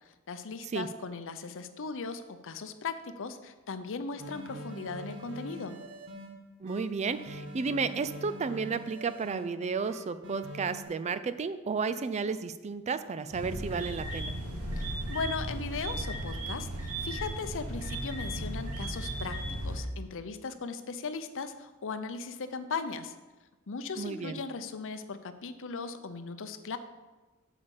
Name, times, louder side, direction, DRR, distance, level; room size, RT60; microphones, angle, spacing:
voice 1, 0.3-5.8 15.1-16.7 17.0-23.1 23.7-26.8, left 4 dB, 60° left, 10 dB, 0.7 m, -38 dB
sound 1, 4.2-6.3 6.7-9.4 9.8-10.8, equal, 55° right, 1.7 m, -44 dB
voice 2, 6.6-14.3 24.0-24.4, right 5 dB, 30° right, 12 dB, 0.4 m, -32 dB
sound 2, 13.3-19.8, right 1 dB, 80° right, 1.8 m, -36 dB
8.2 x 5.1 x 7.0 m, 1.2 s
head